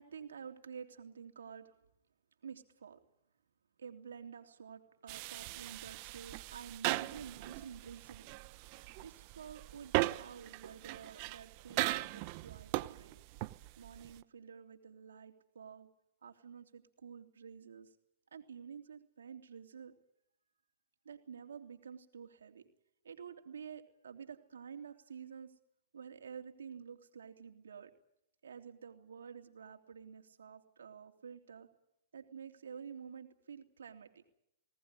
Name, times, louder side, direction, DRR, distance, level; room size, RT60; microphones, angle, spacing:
voice 1, 0.0-1.7 2.4-3.0 3.8-8.3 9.0-13.2 13.8-15.9 16.2-17.9 18.3-19.9 21.0-22.6 23.0-25.5 25.9-27.9 28.4-31.7 32.1-34.2, right 7 dB, 90° right, 5 dB, 3.2 m, -50 dB
sound 1, 5.1-14.2, right 20 dB, 40° right, 0.8 m, -39 dB
20.5 x 18.5 x 9.8 m, 0.80 s
hypercardioid pair, 140°, 0 cm